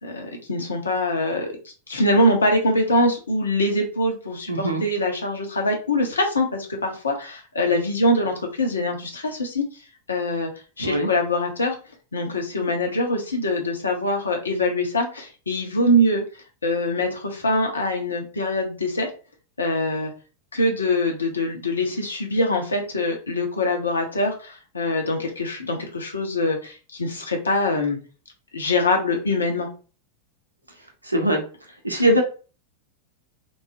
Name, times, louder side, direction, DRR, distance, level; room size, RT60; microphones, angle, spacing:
voice 1, 0.0-1.5 1.9-9.6 10.1-10.5 10.8-11.8 12.1-16.2 16.6-19.1 19.6-20.1 20.5-28.0 28.5-29.7, left 1 dB, 75° left, 2 dB, 0.6 m, -23 dB
voice 2, 4.5-4.8 10.8-11.1 31.0-31.4 31.8-32.2, right 1 dB, 85° right, 2 dB, 0.6 m, -21 dB
3.0 x 2.0 x 2.5 m, 0.35 s
figure-of-eight pair, 90°, 0 cm